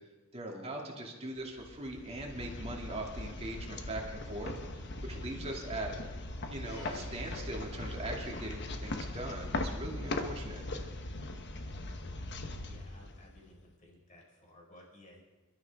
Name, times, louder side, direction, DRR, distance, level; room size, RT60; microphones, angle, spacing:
voice 1, 0.3-5.9 6.5-10.6, right 1 dB, 30° right, 0 dB, 2.5 m, -41 dB
sound 1, 1.6-13.6, left 2 dB, 50° left, 1.1 m, -40 dB
Domestic sounds home sounds, 6.6-11.5 12.3-12.4, left 3 dB, 80° left, 5.5 m, -57 dB
voice 2, 12.7-15.2, left 1 dB, 35° left, -2 dB, 4.8 m, -57 dB
27.5 x 13.0 x 3.6 m, 1.2 s
head